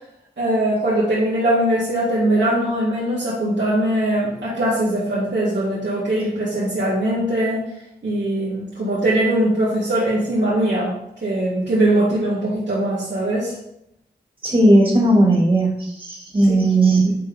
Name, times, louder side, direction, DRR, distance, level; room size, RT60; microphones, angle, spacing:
voice 1, 0.4-7.6 8.0-10.9 11.2-13.5 16.5-16.6, right 1 dB, 80° right, -10 dB, 2.3 m, -21 dB
voice 2, 14.4-17.2, right 1 dB, 30° right, -2 dB, 2.0 m, -16 dB
7.6 x 5.2 x 3.5 m, 0.79 s
wide cardioid pair, 65°, 18 cm